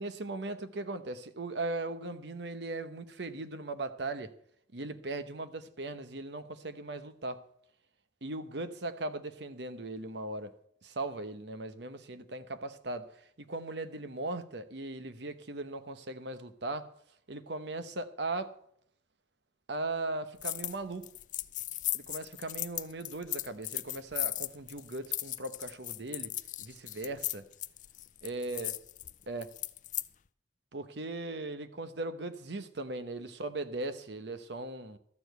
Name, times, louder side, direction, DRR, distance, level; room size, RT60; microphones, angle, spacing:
voice 1, 0.0-4.3 4.7-7.4 8.2-10.5 10.8-13.1 13.4-16.9 17.3-18.6 19.7-21.1 21.9-27.5 28.2-28.7 29.3-29.5 30.7-35.0, right 2 dB, 65° right, 1.0 m, -38 dB
sound 1, 20.4-20.8 21.0-30.1, left 16 dB, 40° left, 0.4 m, -37 dB
13.0 x 7.0 x 8.0 m
head